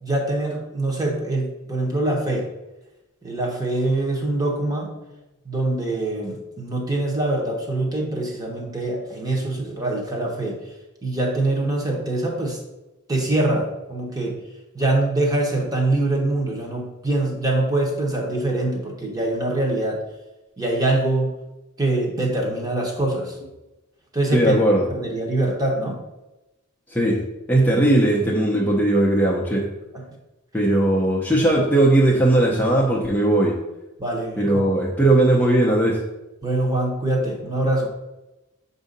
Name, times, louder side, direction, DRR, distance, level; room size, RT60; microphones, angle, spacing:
voice 1, 0.0-2.5 3.2-4.9 5.4-10.6 11.0-12.6 13.1-14.4 14.7-20.0 20.6-21.4 21.8-23.5 24.1-24.6 24.9-26.0 29.9-30.0 34.0-34.7 36.4-37.9, right 2 dB, 15° right, -1 dB, 1.1 m, -24 dB
voice 2, 24.3-24.9 26.9-29.6 30.5-33.5 34.4-36.0, right 1 dB, 5° left, -5 dB, 0.7 m, -18 dB
6.9 x 2.7 x 5.2 m, 1.0 s
head